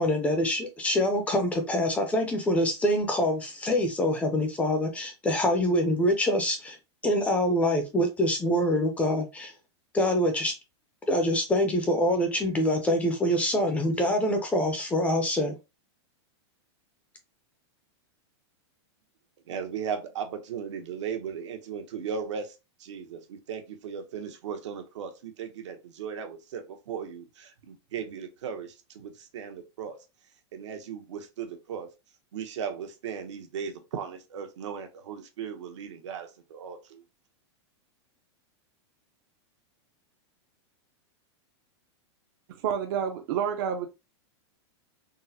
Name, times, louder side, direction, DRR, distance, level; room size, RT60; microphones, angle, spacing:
voice 1, 0.0-6.8 7.0-9.5 9.9-10.5 11.1-15.5, left 1 dB, 10° left, 0.4 m, -25 dB
voice 2, 19.5-30.0 30.5-31.9 32.3-37.0, right 7 dB, 80° right, 0.8 m, -37 dB
voice 3, 42.5-43.9, right 8 dB, 50° right, 0.5 m, -29 dB
3.8 x 2.0 x 2.7 m
supercardioid pair, 155°, 15 cm